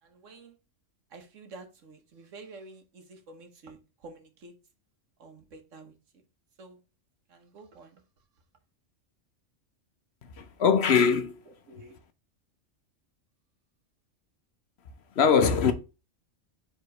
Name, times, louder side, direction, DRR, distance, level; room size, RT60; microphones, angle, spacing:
voice 1, 0.0-0.6 1.1-4.5 5.2-5.9 6.6-6.8 7.3-8.0 11.7-12.0, right 3 dB, 85° right, 1.5 m, -49 dB
voice 2, 10.4-11.4 15.2-15.7, left 6 dB, 60° left, 1.0 m, -22 dB
4.8 x 3.8 x 5.2 m
omnidirectional pair, 1.3 m